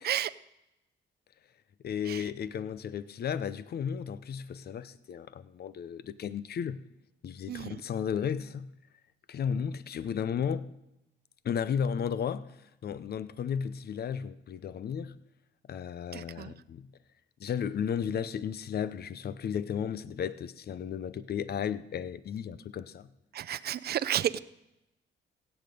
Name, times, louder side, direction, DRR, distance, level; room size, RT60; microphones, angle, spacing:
voice 1, 1.8-6.8 7.2-8.7 9.3-10.7 11.4-12.5 12.8-15.2 15.7-16.9 17.4-23.1, left 7 dB, 55° left, 0.7 m, -34 dB
voice 2, 7.5-7.8 16.1-16.5 23.3-24.4, right 11 dB, 55° right, 0.5 m, -32 dB
16.0 x 8.1 x 5.2 m
cardioid pair, 90°, 20 cm